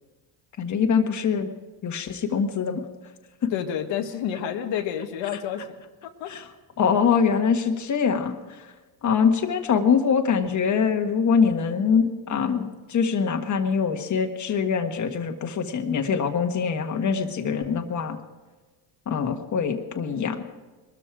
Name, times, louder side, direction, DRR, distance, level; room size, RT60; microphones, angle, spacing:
voice 1, 0.6-1.5 1.8-2.8 3.4-3.5 6.3-6.4 6.8-8.7 9.0-18.2 19.1-20.4, left 6 dB, 40° left, 5 dB, 1.6 m, -23 dB
voice 2, 3.5-5.7 6.0-6.3, left 9 dB, 80° left, 4 dB, 1.6 m, -29 dB
21.5 x 13.5 x 4.8 m, 1.3 s
cardioid pair, 135°, 44 cm